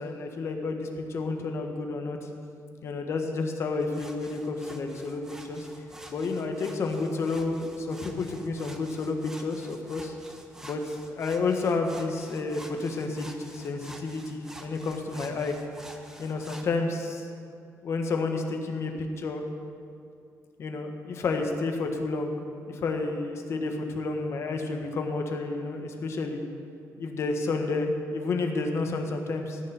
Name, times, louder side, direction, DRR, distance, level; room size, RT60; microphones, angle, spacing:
voice 1, 0.0-2.3 2.8-5.7 6.1-10.1 10.6-15.5 16.2-17.3 17.8-19.4 20.6-26.4 27.0-29.6, left 3 dB, 50° left, 4 dB, 1.4 m, -30 dB
sound 1, 3.8-16.7, right 1 dB, 10° right, 1.0 m, -48 dB
14.5 x 5.5 x 9.2 m, 2.4 s
cardioid pair, 150°, 6 cm